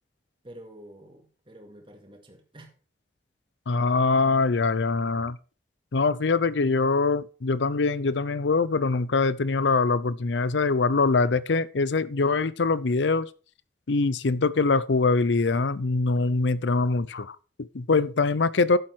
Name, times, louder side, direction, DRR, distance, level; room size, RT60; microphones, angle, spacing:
voice 1, 0.4-2.8 17.9-18.1, right 1 dB, 30° right, 2.3 m, -48 dB
voice 2, 3.7-5.4 5.9-13.3 13.9-18.8, left 3 dB, 90° left, 0.6 m, -23 dB
12.0 x 7.6 x 4.6 m
head